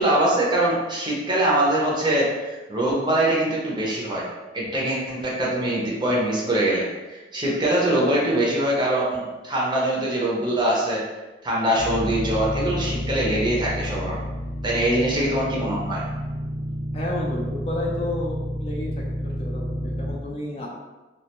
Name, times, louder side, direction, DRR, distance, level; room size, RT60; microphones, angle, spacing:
voice 1, 0.0-4.3 4.5-11.0 11.4-14.2 14.6-16.0, right 1 dB, 25° right, -5 dB, 0.5 m, -23 dB
Lost Ark Drone (rising), 11.8-20.1, equal, 15° left, 0.8 m, -30 dB
voice 2, 16.9-18.9 19.4-20.7, left 1 dB, 35° left, -3 dB, 0.4 m, -31 dB
2.3 x 2.1 x 2.8 m, 1.2 s
head